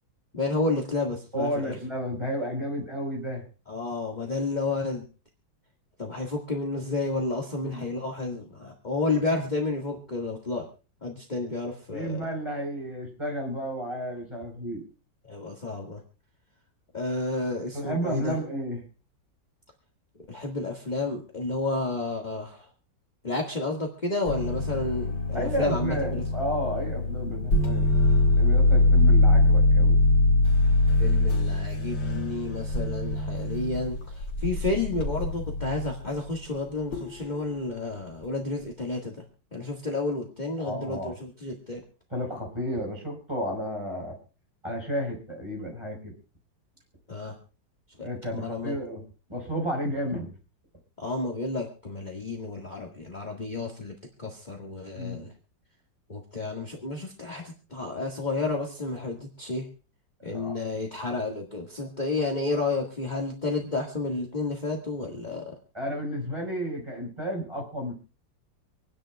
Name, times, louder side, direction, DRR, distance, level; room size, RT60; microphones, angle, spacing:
voice 1, 0.3-1.7 3.7-5.0 6.0-10.7 11.0-12.2 15.2-16.0 16.9-18.4 20.3-22.7 23.2-26.2 31.0-39.2 39.5-41.8 47.1-47.4 48.0-48.8 51.0-53.9 54.2-55.3 56.1-59.7 60.2-65.6, left 3 dB, 25° left, 1 dB, 1.8 m, -31 dB
voice 2, 1.3-3.4 7.6-7.8 11.9-14.8 17.7-18.8 25.3-27.9 28.3-30.0 40.6-41.1 42.1-44.2 44.6-46.1 48.0-49.0 49.3-50.3 54.9-55.3 60.3-60.5 65.7-67.9, equal, 15° right, 0 dB, 4.4 m, -32 dB
sound 1, 24.3-36.0 36.9-37.3, left 2 dB, 80° left, 2.8 m, -23 dB
27.0 x 10.0 x 2.4 m, 0.35 s
omnidirectional pair, 2.0 m